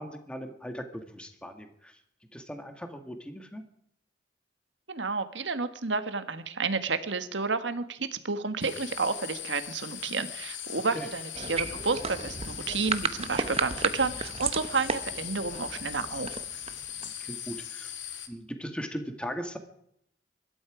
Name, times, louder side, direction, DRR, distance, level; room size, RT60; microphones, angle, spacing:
voice 1, 0.0-2.0 2.3-3.6 10.9-11.1 17.0-17.9 18.3-19.6, equal, 5° left, 6 dB, 1.8 m, -39 dB
voice 2, 4.9-16.3, right 4 dB, 80° right, 10 dB, 1.5 m, -31 dB
sound 1, 8.6-18.3, left 10 dB, 85° left, 2.2 m, -40 dB
sound 2, 11.3-17.2, right 5 dB, 35° right, 0.9 m, -34 dB
23.5 x 12.5 x 5.0 m, 0.73 s
head